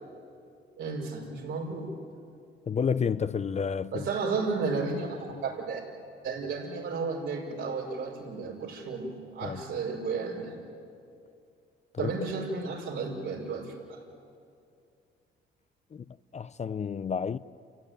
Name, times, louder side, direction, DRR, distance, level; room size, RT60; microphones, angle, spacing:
voice 1, 0.8-1.9 3.9-5.8 6.2-10.5 12.0-13.7, right 4 dB, 80° right, 5.8 m, -33 dB
voice 2, 2.7-4.1 9.4-9.6 11.9-12.1 15.9-16.0 16.3-17.4, left 6 dB, 35° left, 0.6 m, -30 dB
28.5 x 16.5 x 9.3 m
cardioid pair, 90°, 20 cm